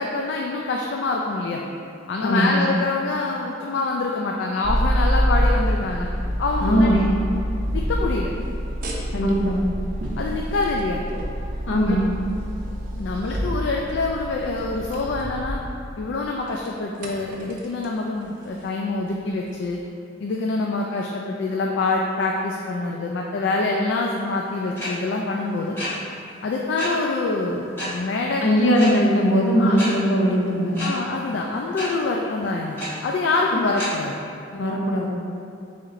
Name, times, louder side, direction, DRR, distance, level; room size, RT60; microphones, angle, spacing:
voice 1, 0.0-1.6 2.1-6.1 6.4-6.9 7.7-8.3 9.2-9.3 10.2-11.0 11.8-12.0 13.0-15.6 16.0-19.8 20.2-25.8 26.4-28.4 29.6-29.8 30.8-32.8 33.0-34.2, left 3 dB, 65° left, 0 dB, 0.3 m, -25 dB
voice 2, 2.2-2.6 6.6-7.1 9.1-9.6 11.7-12.0 28.4-30.8 34.5-35.1, equal, 85° left, -1 dB, 0.7 m, -20 dB
sound 1, 4.6-16.1 16.5-17.9 18.2-18.5 19.1-19.2 19.6-19.7, equal, 45° right, 0.5 m, -26 dB
sound 2, 24.8-24.9 25.8-25.9 26.8-26.9 27.8-27.9 28.7-28.9 29.8-29.9 30.7-30.9 31.8-31.9 32.8-32.9 33.8-33.9, equal, 10° left, 1.4 m, -30 dB
7.0 x 2.8 x 2.5 m, 2.5 s
head